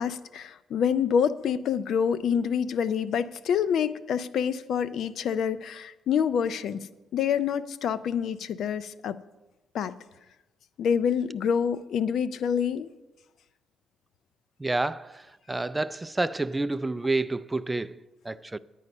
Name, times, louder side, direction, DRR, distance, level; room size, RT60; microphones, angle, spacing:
voice 1, 0.0-6.9 7.1-9.2 9.7-9.9 10.8-12.9, left 7 dB, 70° left, 0.5 m, -27 dB
voice 2, 14.6-18.6, right 2 dB, 15° right, 0.3 m, -29 dB
10.5 x 9.2 x 5.4 m
cardioid pair, 90°, 0 cm